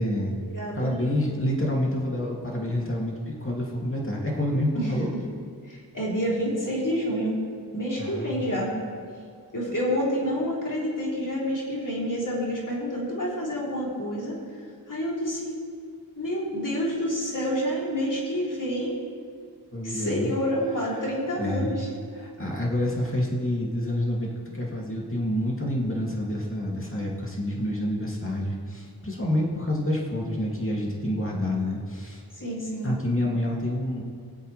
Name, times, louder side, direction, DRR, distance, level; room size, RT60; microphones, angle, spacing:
voice 1, 0.0-0.3 0.8-5.1 8.0-8.6 19.7-20.3 21.4-21.7 22.2-32.2 32.8-34.0, left 1 dB, 30° left, -3 dB, 2.6 m, -28 dB
voice 2, 0.5-1.0 4.7-5.0 5.7-7.4 7.7-8.8 9.5-14.4 14.9-15.6 16.2-19.0 19.8-21.9 32.4-33.0, equal, 50° left, -5 dB, 3.7 m, -28 dB
22.5 x 7.8 x 3.4 m, 2.2 s
wide cardioid pair, 45°, 40 cm